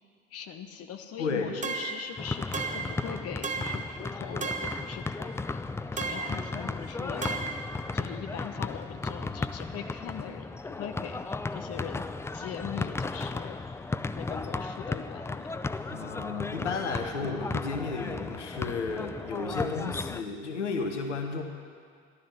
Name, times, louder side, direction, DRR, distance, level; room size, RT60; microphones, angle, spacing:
voice 1, 0.3-5.6 5.9-7.5 7.9-12.0 12.3-13.8 14.2-15.6, left 8 dB, 45° left, 7 dB, 1.1 m, -41 dB
voice 2, 1.2-1.6 15.9-21.4, left 4 dB, 80° left, 5 dB, 1.1 m, -33 dB
sound 1, 1.6-2.1 2.5-3.0 3.4-3.9 4.4-4.9 6.0-6.4 7.2-7.7, right 4 dB, 20° right, 1.1 m, -33 dB
sound 2, 2.2-20.2, left 3 dB, 10° left, 0.4 m, -35 dB
14.0 x 12.0 x 6.3 m, 2.1 s
figure-of-eight pair, 60°, 35 cm